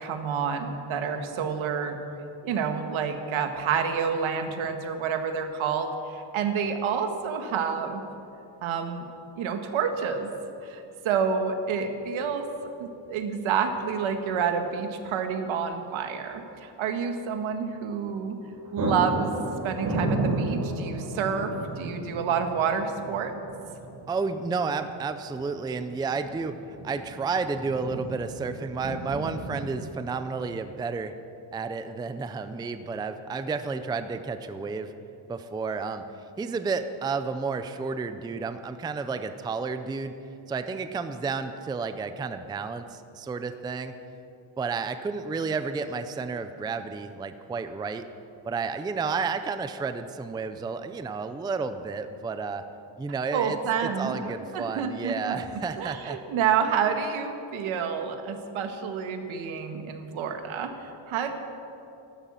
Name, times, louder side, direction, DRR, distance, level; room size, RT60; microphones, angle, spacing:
voice 1, 0.0-2.0 2.4-8.0 8.6-9.0 9.4-10.3 10.6-12.5 12.8-18.4 18.7-19.3 19.6-23.3 53.3-55.4 55.8-61.3, right 6 dB, 80° right, 6 dB, 1.7 m, -29 dB
sound 1, 13.5-13.9 14.2-14.3 18.0-18.2 18.4-29.8, right 2 dB, 40° right, 4.1 m, -34 dB
voice 2, 24.1-26.6 26.8-31.1 31.5-34.9 35.3-36.0 36.4-40.2 40.5-43.9 44.6-48.1 48.4-52.6 53.0-56.2, right 4 dB, 10° right, 10 dB, 0.4 m, -31 dB
14.0 x 12.5 x 7.4 m, 2.9 s
cardioid pair, 165°, 47 cm